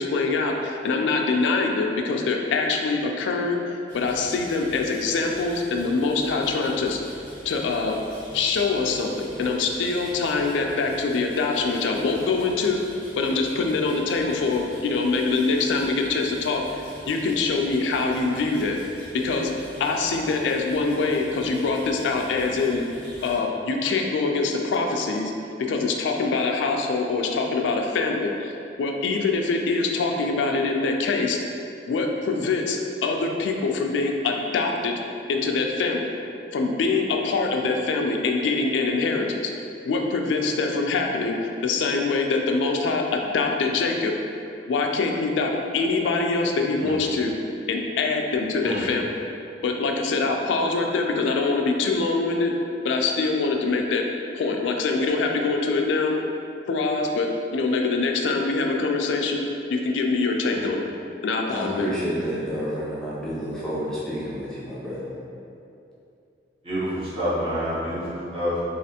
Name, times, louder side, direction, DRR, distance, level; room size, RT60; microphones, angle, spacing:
voice 1, 0.0-7.0 7.4-8.0 8.3-12.8 13.2-18.8 19.1-19.5 19.8-22.9 23.2-25.3 25.7-28.5 28.8-31.4 31.9-34.9 35.3-36.2 36.5-39.5 39.9-41.4 41.6-44.1 44.7-47.3 47.7-49.2 49.6-52.5 52.8-54.0 54.3-56.2 56.7-59.4 59.7-60.9 61.2-61.9, left 3 dB, 85° left, 2 dB, 0.3 m, -24 dB
sound 1, 3.9-23.4, equal, 50° right, 1.5 m, -45 dB
voice 2, 61.5-65.1, equal, 5° left, -9 dB, 0.4 m, -30 dB
voice 3, 66.6-68.6, equal, 30° right, -10 dB, 0.9 m, -28 dB
3.2 x 2.4 x 2.8 m, 2.6 s
head